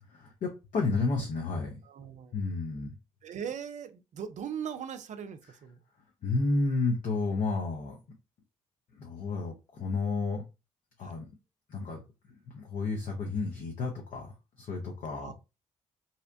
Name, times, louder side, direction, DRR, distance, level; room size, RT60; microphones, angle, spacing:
voice 1, 0.1-1.8 2.3-2.9 6.2-8.0 8.9-10.4 11.0-11.3 11.7-12.0 12.5-14.3 14.6-15.3, left 3 dB, 55° left, 0.7 m, -31 dB
voice 2, 1.9-2.4 3.2-5.8 11.0-11.2 15.2-15.3, right 8 dB, 50° right, 0.4 m, -39 dB
2.7 x 2.1 x 2.6 m
hypercardioid pair, 40°, 16 cm